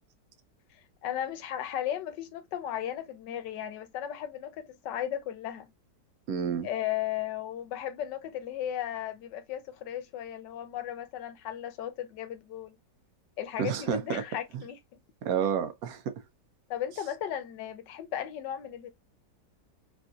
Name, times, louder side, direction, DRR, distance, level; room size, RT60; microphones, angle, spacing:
voice 1, 1.0-5.7 6.6-12.8 13.4-14.8 16.7-18.9, left 11 dB, 85° left, 1.3 m, -35 dB
voice 2, 6.3-6.7 13.6-14.2 14.5-14.6 15.2-16.1, right 7 dB, 70° right, 0.9 m, -30 dB
3.6 x 2.6 x 2.4 m
omnidirectional pair, 1.9 m